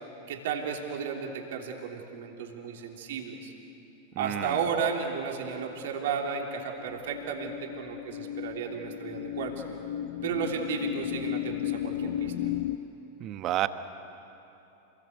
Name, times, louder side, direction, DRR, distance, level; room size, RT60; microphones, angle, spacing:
voice 1, 0.3-3.5 4.2-9.5 10.2-12.3, right 6 dB, 65° right, 1 dB, 3.3 m, -33 dB
voice 2, 4.2-4.6 13.2-13.7, right 14 dB, 40° right, 11 dB, 1.2 m, -30 dB
sound 1, 5.5-12.8, left 11 dB, 60° left, 0.8 m, -35 dB
27.5 x 20.5 x 8.3 m, 3.0 s
hypercardioid pair, 95°, 0 cm